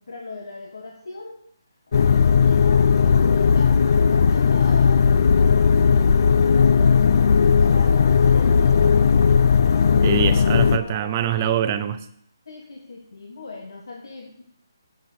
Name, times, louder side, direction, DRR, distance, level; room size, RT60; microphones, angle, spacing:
voice 1, 0.0-1.4 2.0-7.0 7.5-9.1 12.5-14.4, left 3 dB, 75° left, 1 dB, 1.6 m, -39 dB
sound 1, 1.9-10.8, left 6 dB, 50° left, 0.5 m, -17 dB
Brass instrument, 6.1-11.9, left 3 dB, 30° left, 1.5 m, -40 dB
voice 2, 10.0-12.0, right 10 dB, 30° right, 12 dB, 0.6 m, -24 dB
8.2 x 7.9 x 6.4 m, 0.69 s
hypercardioid pair, 160°, 2 cm